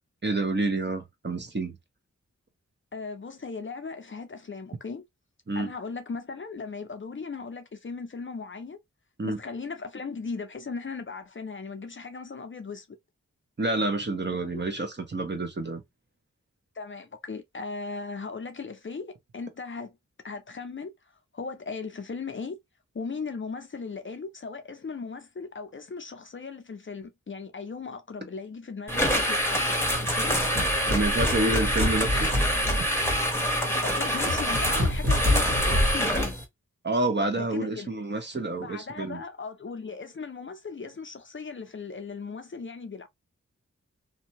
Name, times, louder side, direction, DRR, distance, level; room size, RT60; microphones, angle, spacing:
voice 1, 0.2-1.8 5.5-5.7 9.2-9.4 13.6-15.8 30.9-32.3 36.8-39.2, right 2 dB, 35° right, 0.8 m, -28 dB
voice 2, 2.9-5.0 5.6-8.8 9.2-13.0 14.5-14.6 16.8-19.9 20.2-20.9 21.3-22.6 22.9-30.4 33.5-36.4 37.3-37.9 38.6-43.1, left 4 dB, 40° left, 0.5 m, -37 dB
sound 1, 28.9-36.4, equal, 10° left, 1.0 m, -26 dB
sound 2, 30.4-36.3, left 1 dB, 70° right, 1.3 m, -28 dB
2.7 x 2.2 x 2.8 m
wide cardioid pair, 55°, 30 cm